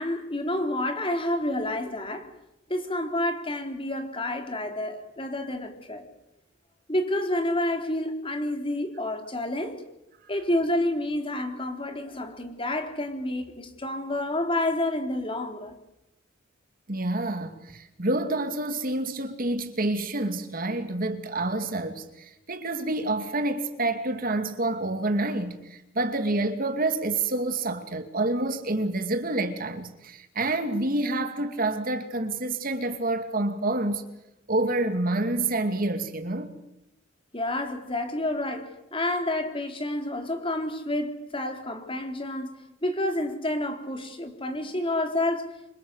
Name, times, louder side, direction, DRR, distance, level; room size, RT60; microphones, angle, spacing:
voice 1, 0.0-2.3 2.7-6.1 6.9-9.8 10.3-15.7 37.3-45.5, left 1 dB, 30° left, 3.8 m, -29 dB
voice 2, 16.9-34.1 34.5-36.5, right 2 dB, 50° right, 2.5 m, -28 dB
28.5 x 25.5 x 8.2 m
head